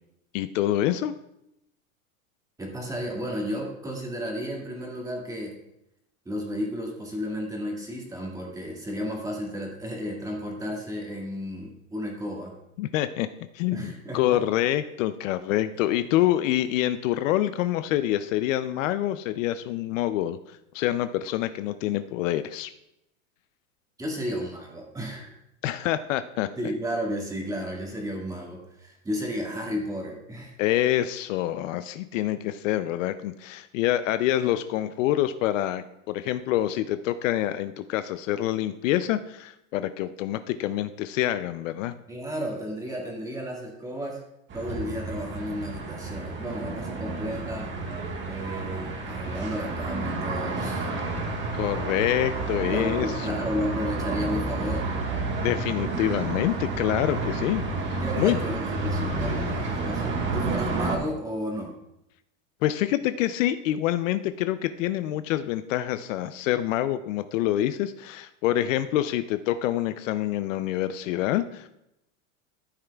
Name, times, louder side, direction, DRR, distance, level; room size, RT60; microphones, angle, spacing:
voice 1, 0.3-1.1 12.8-13.3 13.5-22.7 25.6-26.5 30.6-41.9 51.1-51.3 51.5-53.3 55.4-58.4 62.6-71.8, left 13 dB, 65° left, 12 dB, 0.6 m, -26 dB
voice 2, 2.6-5.5 6.3-12.5 13.7-14.4 24.0-25.3 26.6-30.6 42.1-44.2 44.5-47.7 48.2-51.0 52.7-54.9 58.0-61.7, equal, 10° right, -1 dB, 1.9 m, -33 dB
sound 1, 44.5-61.0, right 3 dB, 25° right, 1.5 m, -30 dB
13.5 x 7.8 x 2.3 m, 0.84 s
supercardioid pair, 140°, 41 cm